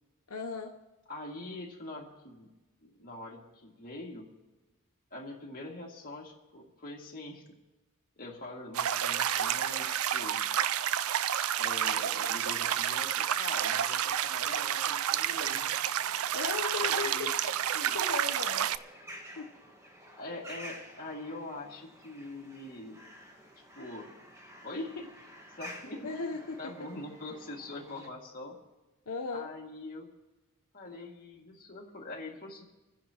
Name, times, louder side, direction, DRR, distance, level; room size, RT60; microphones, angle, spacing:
voice 1, 0.3-0.8 16.3-19.0 19.4-19.5 26.0-26.7 29.1-29.5, left 4 dB, 80° left, 3 dB, 0.8 m, -37 dB
voice 2, 1.1-2.5 2.8-4.3 5.1-7.6 8.2-10.4 11.6-15.7 16.7-17.5 17.7-18.0 20.2-23.0 23.7-24.1 24.6-25.3 25.6-26.1 26.6-28.6 29.3-30.1 30.7-32.6, left 2 dB, 40° left, -2 dB, 2.3 m, -43 dB
sound 1, 8.7-18.8, right 10 dB, 70° right, 0.4 m, -30 dB
sound 2, 15.3-28.1, equal, 15° right, 1.4 m, -51 dB
29.5 x 10.0 x 3.0 m, 1.1 s
head